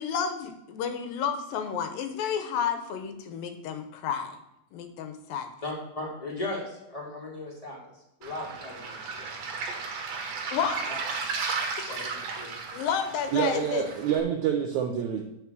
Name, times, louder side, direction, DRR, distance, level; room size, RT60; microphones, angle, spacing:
voice 1, 0.0-4.4 4.7-5.5 10.5-10.8 11.8-12.1 12.7-13.9, left 7 dB, 80° left, 7 dB, 2.5 m, -31 dB
voice 2, 5.6-9.2 11.9-12.5 13.3-13.4, left 2 dB, 15° left, -3 dB, 1.7 m, -37 dB
Waves surf, 8.2-14.2, right 4 dB, 55° right, 2.2 m, -34 dB
voice 3, 13.3-15.2, right 8 dB, 75° right, 3 dB, 1.7 m, -27 dB
8.2 x 5.4 x 6.0 m, 0.85 s
omnidirectional pair, 4.2 m